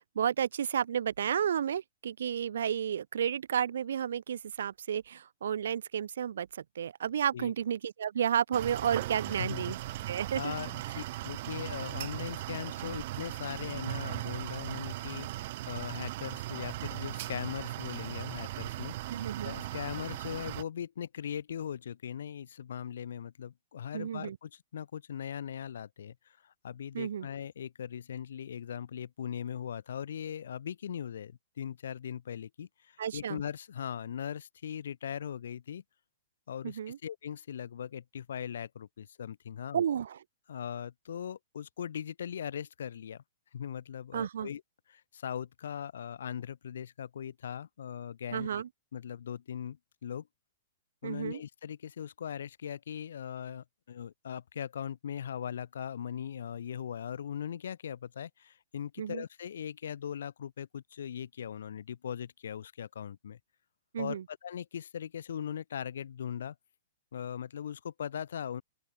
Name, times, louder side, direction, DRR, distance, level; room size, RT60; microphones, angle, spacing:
voice 1, 0.0-9.8 10.1-10.5 19.1-19.5 23.9-24.4 26.9-27.3 33.0-33.4 36.6-37.0 39.7-40.2 44.1-44.5 48.3-48.7 51.0-51.4 59.0-59.2 63.9-64.2, right 8 dB, 80° right, 0.5 m, -32 dB
sound 1, 8.5-20.6, right 17 dB, 40° right, 1.4 m, -38 dB
voice 2, 9.3-9.8 10.3-35.8 36.5-39.8 40.5-43.2 43.5-44.6 44.9-48.5 48.9-50.3 51.0-63.4 64.0-66.5 67.1-68.6, left 8 dB, 80° left, 1.2 m, -40 dB
open air
hypercardioid pair, 165°, 0 cm